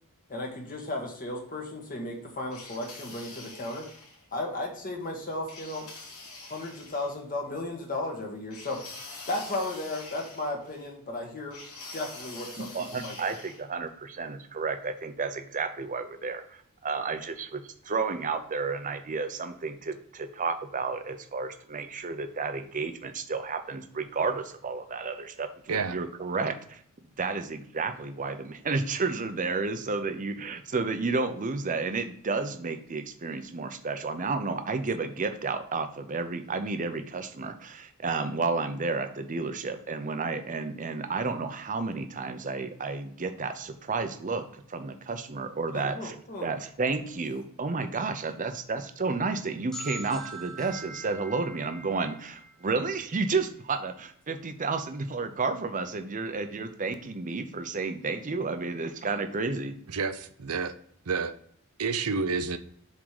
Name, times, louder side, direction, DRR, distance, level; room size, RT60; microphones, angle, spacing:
voice 1, 0.3-3.9 4.3-5.9 6.5-8.8 9.3-11.6 11.9-13.4 45.7-46.5, left 2 dB, 40° left, 1 dB, 1.5 m, -35 dB
sound 1, 2.5-4.2 5.5-7.1 8.5-10.9 11.5-13.6, left 3 dB, 80° left, 2.4 m, -45 dB
voice 2, 12.6-26.8 27.2-46.1 46.4-59.7, right 4 dB, 35° right, 9 dB, 0.7 m, -31 dB
sound 2, 49.7-53.4, right 2 dB, 5° left, 0.8 m, -43 dB
voice 3, 59.9-60.7 61.1-61.3 61.8-62.6, right 4 dB, 85° right, 11 dB, 0.6 m, -29 dB
7.4 x 3.8 x 4.8 m, 0.63 s
head